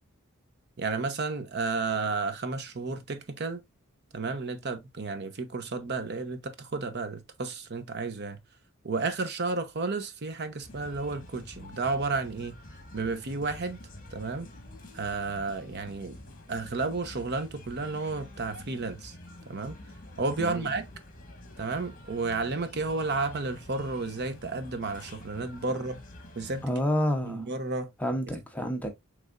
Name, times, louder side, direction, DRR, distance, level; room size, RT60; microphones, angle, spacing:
voice 1, 0.8-3.6 4.1-8.4 8.8-12.6 12.9-13.8 14.1-14.5 14.9-16.2 16.5-19.1 19.5-19.8 20.2-20.9 21.6-26.0 26.4-26.8 27.3-27.9, right 3 dB, 55° right, 0.8 m, -32 dB
sound 1, 10.6-26.6, left 1 dB, 40° left, 1.3 m, -47 dB
voice 2, 20.4-20.7 26.6-27.5 28.0-28.9, equal, 5° left, 0.8 m, -29 dB
6.4 x 3.5 x 2.4 m
head